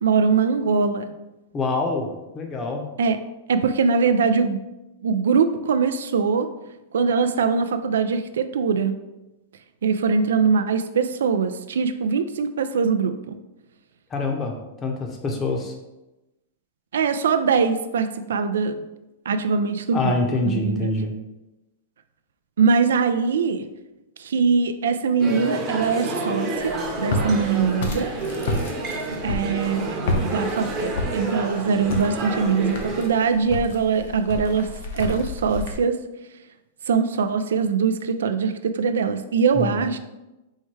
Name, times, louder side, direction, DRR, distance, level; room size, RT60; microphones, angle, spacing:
voice 1, 0.0-1.1 3.0-3.2 3.5-4.6 5.0-6.5 6.9-9.0 9.8-13.4 16.9-18.9 19.3-20.2 20.5-20.9 22.6-23.6 24.2-28.1 29.2-34.7 34.9-36.0 36.9-40.0, right 5 dB, 85° right, 9 dB, 0.3 m, -22 dB
voice 2, 1.5-2.1 2.3-2.9 14.1-14.6 14.8-15.7 19.9-21.1 39.5-39.8, left 2 dB, 20° left, 2 dB, 0.7 m, -25 dB
sound 1, 25.2-33.1, right 2 dB, 25° right, 0.9 m, -29 dB
Walk footsteps, 26.6-35.8, left 2 dB, 65° left, 0.8 m, -31 dB
4.4 x 2.2 x 4.5 m, 1.0 s
hypercardioid pair, 140°, 0 cm